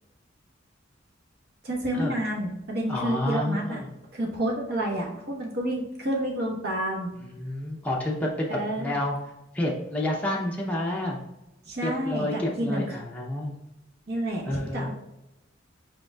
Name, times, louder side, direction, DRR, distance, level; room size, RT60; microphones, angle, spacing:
voice 1, 1.6-3.8 4.1-7.1 8.5-9.0 11.7-13.0 14.1-14.9, right 1 dB, 55° right, 0 dB, 1.1 m, -29 dB
voice 2, 2.9-3.9 7.2-8.5 8.8-9.2 9.5-11.2 11.8-13.5 14.5-14.9, left 1 dB, 10° left, -3 dB, 0.5 m, -29 dB
5.1 x 4.6 x 2.2 m, 0.92 s
head